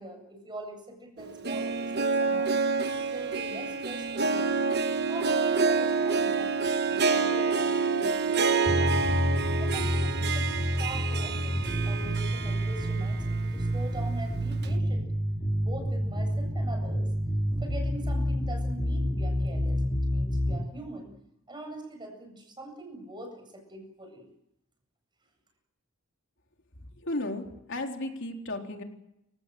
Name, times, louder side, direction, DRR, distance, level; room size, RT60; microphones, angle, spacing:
voice 1, 0.0-2.7 3.1-4.6 5.1-9.0 9.6-15.1 15.6-17.1 17.6-21.1 21.5-24.3, right 1 dB, 20° right, 4 dB, 7.8 m, -43 dB
Harp, 1.2-13.3 13.7-13.8 14.6-14.7, right 4 dB, 50° right, 1.2 m, -28 dB
sound 1, 8.7-20.6, equal, 15° left, 5.1 m, -28 dB
voice 2, 27.0-27.4 27.7-28.8, left 2 dB, 60° left, 3 dB, 3.9 m, -33 dB
29.5 x 17.0 x 7.8 m, 0.84 s
head